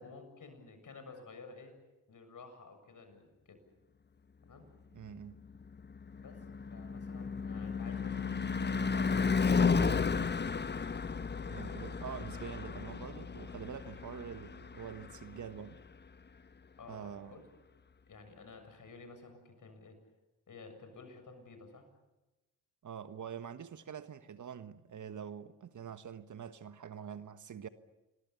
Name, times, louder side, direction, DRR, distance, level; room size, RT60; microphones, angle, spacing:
voice 1, 0.0-1.7 2.1-3.6 4.4-4.7 6.2-10.4 16.8-17.4 18.1-20.0 20.5-21.9, left 4 dB, 50° left, 7.2 m, -52 dB
voice 2, 4.9-5.4 11.5-15.8 16.9-17.4 22.8-27.7, right 8 dB, 50° right, 1.5 m, -45 dB
Car passing by / Truck / Engine, 5.5-15.7, left 5 dB, 25° left, 1.1 m, -33 dB
29.0 x 22.5 x 7.1 m
hypercardioid pair, 45°, 39 cm